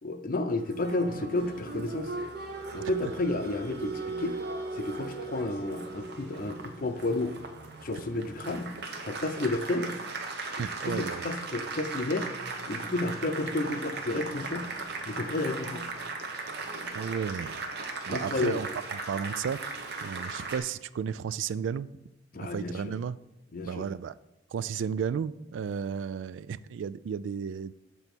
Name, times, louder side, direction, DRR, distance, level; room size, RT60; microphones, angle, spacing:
voice 1, 0.0-2.1 2.7-4.4 4.7-7.4 7.8-8.7 9.0-10.0 10.6-12.3 12.7-14.7 15.1-15.8 18.1-18.6 22.3-22.9 23.5-23.9, left 2 dB, 50° left, 8 dB, 0.6 m, -31 dB
Applause, 0.6-20.6, right 3 dB, 60° right, 0.9 m, -38 dB
voice 2, 10.6-11.2 16.9-17.6 18.1-18.7 19.1-19.6 20.0-21.9 22.4-23.2 23.7-24.2 24.5-27.7, right 7 dB, 80° right, 17 dB, 0.3 m, -33 dB
7.0 x 4.2 x 6.0 m, 0.96 s
head